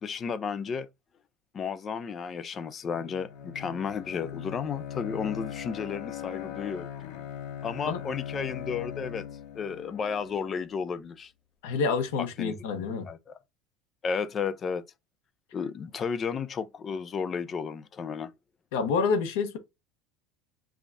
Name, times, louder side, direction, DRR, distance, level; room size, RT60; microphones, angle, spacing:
voice 1, 0.0-0.9 1.5-6.9 7.6-9.3 9.6-11.3 12.4-13.4 14.0-14.8 15.5-18.3, left 6 dB, 25° left, 0.4 m, -33 dB
Bowed string instrument, 2.9-10.7, left 9 dB, 65° left, 0.9 m, -40 dB
voice 2, 11.6-13.1 18.7-19.6, left 5 dB, 85° left, 0.9 m, -28 dB
5.1 x 2.4 x 2.5 m
cardioid pair, 150°, 0 cm